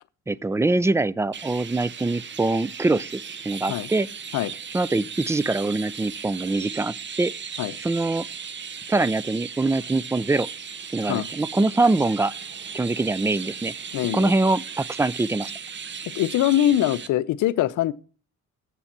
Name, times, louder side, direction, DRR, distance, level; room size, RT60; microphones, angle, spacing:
voice 1, 0.3-3.2 3.5-4.1 4.7-7.3 7.8-8.3 8.9-10.5 10.9-12.3 12.7-13.7 14.1-15.5, right 2 dB, 10° right, 0.3 m, -23 dB
Chirp tweet, 1.3-17.1, right 6 dB, 40° right, 0.8 m, -37 dB
voice 2, 13.9-14.3 16.1-17.9, left 12 dB, 80° left, 0.7 m, -23 dB
7.0 x 7.0 x 7.3 m
cardioid pair, 90°, 30 cm